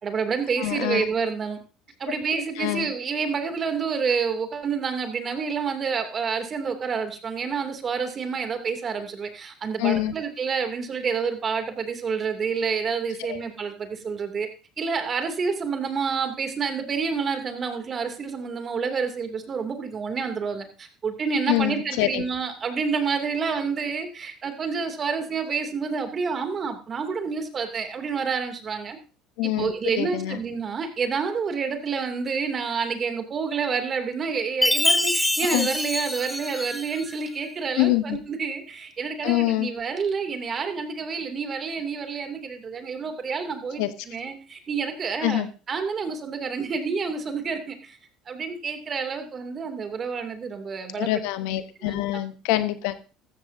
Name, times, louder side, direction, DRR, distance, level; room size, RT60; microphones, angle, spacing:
voice 1, 0.0-1.6 2.0-14.5 14.8-29.0 29.4-45.4 45.7-48.0 48.3-51.1 51.8-52.2, right 5 dB, 40° right, 6 dB, 2.5 m, -28 dB
voice 2, 0.6-1.0 2.6-2.9 9.8-10.1 13.3-13.4 21.5-22.2 29.4-30.4 35.5-35.7 37.8-38.2 39.2-39.7 43.8-43.9 45.2-45.5 51.0-52.9, left 15 dB, 80° left, 12 dB, 1.0 m, -25 dB
Chime, 34.6-37.1, left 1 dB, 5° left, 0.8 m, -24 dB
14.0 x 14.0 x 2.7 m, 0.33 s
supercardioid pair, 90°, 0 cm